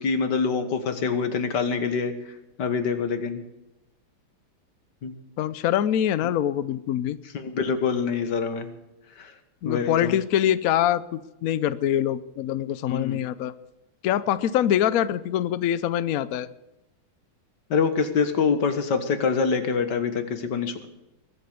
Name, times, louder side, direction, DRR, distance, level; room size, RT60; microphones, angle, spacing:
voice 1, 0.0-2.1 2.6-3.4 5.0-5.1 7.3-8.7 9.2-9.3 9.6-10.1 12.9-13.2 17.7-20.9, left 5 dB, 55° left, 9 dB, 2.0 m, -25 dB
voice 2, 5.4-7.2 9.6-13.5 14.0-16.5, left 11 dB, 80° left, 15 dB, 0.8 m, -24 dB
22.0 x 8.2 x 6.8 m, 0.95 s
omnidirectional pair, 2.3 m